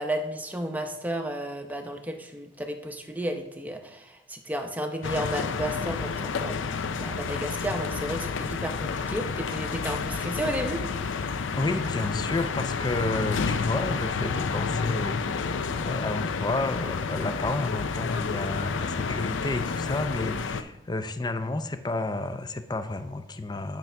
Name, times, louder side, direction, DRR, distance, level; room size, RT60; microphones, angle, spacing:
voice 1, 0.0-10.8, right 1 dB, 10° right, 4 dB, 0.7 m, -33 dB
sound 1, 5.0-20.6, left 5 dB, 80° left, 0.5 m, -30 dB
voice 2, 11.5-23.8, left 2 dB, 20° left, 9 dB, 0.5 m, -31 dB
10.5 x 5.9 x 3.4 m, 0.97 s
head